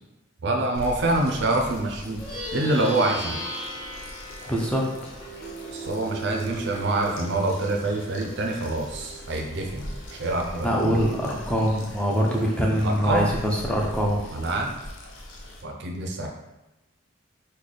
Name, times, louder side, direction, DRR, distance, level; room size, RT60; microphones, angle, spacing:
voice 1, 0.4-2.2 2.5-3.5 5.7-10.7 12.7-13.3 14.3-14.7 15.6-16.3, right 2 dB, 60° right, 1 dB, 0.4 m, -26 dB
sound 1, 0.7-15.6, left 1 dB, 70° left, 0.6 m, -42 dB
Plucked string instrument, 2.1-11.8, right 1 dB, 25° left, 1.1 m, -38 dB
voice 2, 4.5-4.9 10.6-14.2, equal, 5° left, -2 dB, 0.4 m, -24 dB
3.9 x 2.1 x 3.2 m, 0.96 s
head